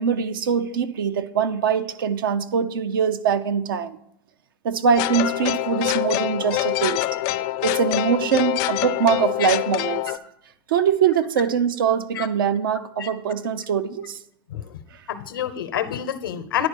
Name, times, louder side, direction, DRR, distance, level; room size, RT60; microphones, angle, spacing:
voice 1, 0.0-4.0 4.6-7.0 7.6-10.0 10.7-14.2, right 7 dB, 80° right, 10 dB, 0.7 m, -23 dB
sound 1, 5.0-10.2, left 16 dB, 55° left, 0.5 m, -25 dB
voice 2, 15.1-16.7, left 10 dB, 85° left, 11 dB, 0.9 m, -27 dB
10.5 x 4.5 x 6.8 m, 0.74 s
hypercardioid pair, 100°, 11 cm